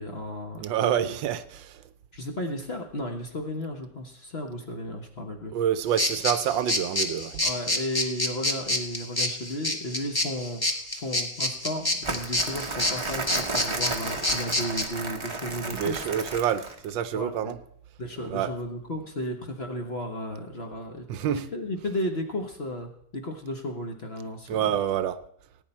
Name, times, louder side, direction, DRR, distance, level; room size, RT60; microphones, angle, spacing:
voice 1, 0.0-1.2 2.1-5.5 7.4-16.1 17.1-17.5 18.0-24.7, left 1 dB, 35° left, 3 dB, 1.1 m, -34 dB
voice 2, 0.6-1.8 5.5-7.4 15.7-17.6 18.3-18.5 21.1-21.4 24.5-25.2, right 10 dB, 75° right, 13 dB, 1.3 m, -27 dB
sound 1, 6.0-14.8, left 1 dB, 20° left, 0.7 m, -28 dB
Crumpling crinkling, 12.0-16.9, right 3 dB, 25° right, 0.7 m, -33 dB
17.5 x 9.4 x 4.4 m, 0.68 s
omnidirectional pair, 2.2 m